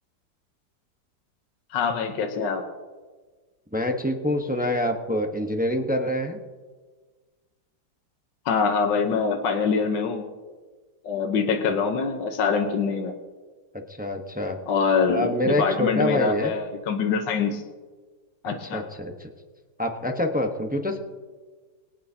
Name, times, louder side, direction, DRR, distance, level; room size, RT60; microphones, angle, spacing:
voice 1, 1.7-2.6 8.4-10.2 11.0-13.1 14.7-17.6 18.4-18.8, left 5 dB, 75° left, 4 dB, 1.6 m, -24 dB
voice 2, 3.7-6.4 14.0-14.6 15.1-16.5 18.7-19.3 19.8-21.0, left 1 dB, 10° right, 3 dB, 0.6 m, -26 dB
23.0 x 9.1 x 2.8 m, 1.4 s
omnidirectional pair, 2.0 m